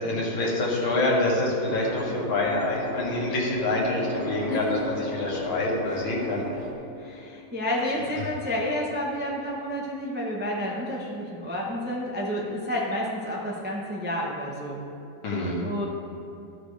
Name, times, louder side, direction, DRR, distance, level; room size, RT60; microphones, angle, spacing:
voice 1, 0.0-6.4 15.2-15.6, left 2 dB, 85° left, -4 dB, 2.4 m, -26 dB
sound 1, 1.6-6.7, left 1 dB, 50° right, 0.8 m, -36 dB
voice 2, 4.5-4.8 5.9-6.0 7.0-14.8 15.6-15.8, equal, 15° right, -3 dB, 0.4 m, -30 dB
13.5 x 5.9 x 3.4 m, 2.8 s
omnidirectional pair, 2.2 m